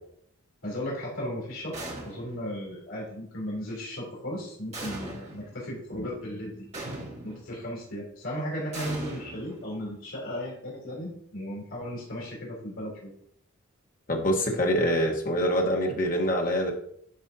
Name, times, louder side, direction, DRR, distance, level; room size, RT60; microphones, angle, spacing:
voice 1, 0.6-6.7 7.2-13.1, equal, 70° left, -3 dB, 3.2 m, -36 dB
sound 1, 1.7-2.5 4.7-5.5 6.7-7.5 8.7-9.9, right 2 dB, 30° right, 1.8 m, -39 dB
voice 2, 14.1-16.7, equal, 40° left, 1 dB, 1.2 m, -25 dB
10.5 x 5.0 x 2.7 m, 0.66 s
head